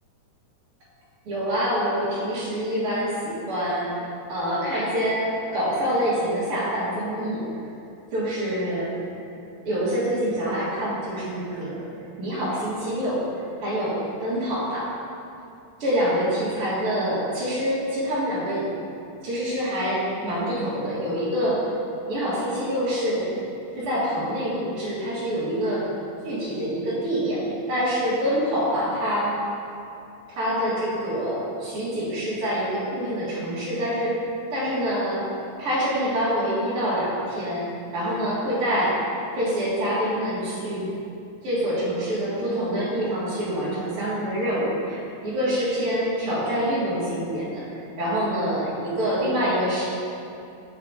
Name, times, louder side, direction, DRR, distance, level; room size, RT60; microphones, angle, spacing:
voice 1, 1.3-3.9 4.3-7.5 8.1-9.0 9.6-11.9 12.2-13.2 13.6-14.9 15.8-18.6 19.2-21.6 22.1-23.3 23.8-25.9 26.2-29.3 30.4-34.1 34.5-35.2 35.6-37.7 37.9-39.0 39.4-40.9 41.4-47.6 48.0-49.9, equal, 55° right, -11 dB, 1.9 m, -26 dB
7.6 x 4.8 x 4.7 m, 2.6 s
omnidirectional pair, 3.7 m